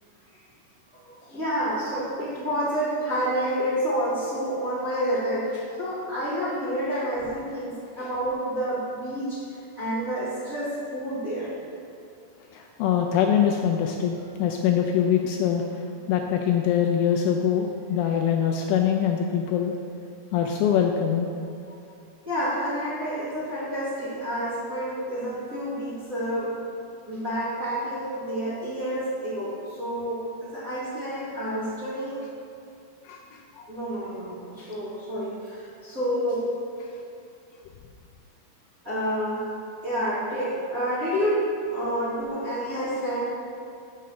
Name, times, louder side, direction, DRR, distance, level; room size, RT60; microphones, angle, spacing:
voice 1, 0.9-9.4 9.8-11.5 22.3-26.6 27.1-32.2 33.7-36.5 38.8-39.5 39.8-43.3, equal, 30° right, -11 dB, 1.8 m, -29 dB
voice 2, 12.5-14.1 14.4-19.8 20.3-21.3 33.1-33.7, left 8 dB, 80° left, 2 dB, 2.4 m, -24 dB
7.5 x 6.8 x 6.7 m, 2.5 s
omnidirectional pair, 4.9 m